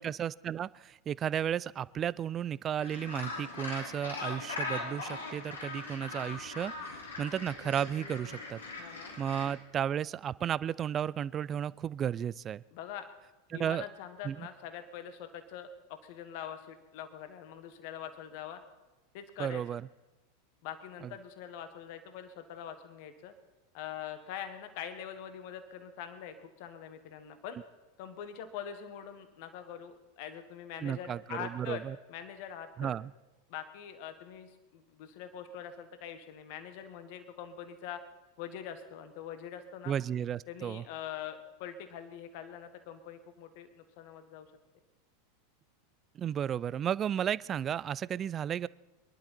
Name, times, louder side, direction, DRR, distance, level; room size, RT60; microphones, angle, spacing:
voice 1, 0.0-6.7 7.2-8.6 9.2-12.6 13.5-13.9 14.2-14.5 19.4-19.8 30.8-32.0 32.8-33.1 39.9-40.8 46.1-48.7, right 9 dB, 30° right, 21 dB, 0.4 m, -33 dB
Gull seagull, 2.8-9.5, left 3 dB, 75° left, 3.1 m, -40 dB
voice 2, 8.8-9.2 12.7-13.1 13.5-18.6 19.1-19.6 20.6-23.3 23.7-27.6 28.0-32.9 33.5-38.0 38.4-39.9 40.5-44.5, left 9 dB, 55° left, 9 dB, 1.4 m, -44 dB
24.0 x 11.5 x 4.5 m, 1.1 s
figure-of-eight pair, 90°, 0 cm